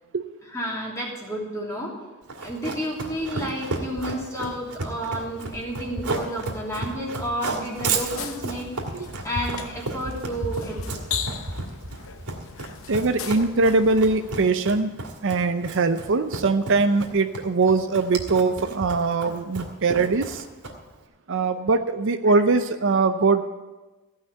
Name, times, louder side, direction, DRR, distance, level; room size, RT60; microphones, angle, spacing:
voice 1, 0.5-1.9 2.4-8.7 9.0-10.9 22.3-22.4, equal, 15° left, -3 dB, 3.0 m, -31 dB
Run, 2.3-21.0, right 3 dB, 90° right, 2.2 m, -32 dB
sound 1, 7.7-14.5, left 7 dB, 65° left, 0.8 m, -38 dB
voice 2, 12.9-14.9 15.2-20.4 21.3-23.5, right 3 dB, 60° right, 9 dB, 0.6 m, -22 dB
15.5 x 5.8 x 9.0 m, 1.2 s
head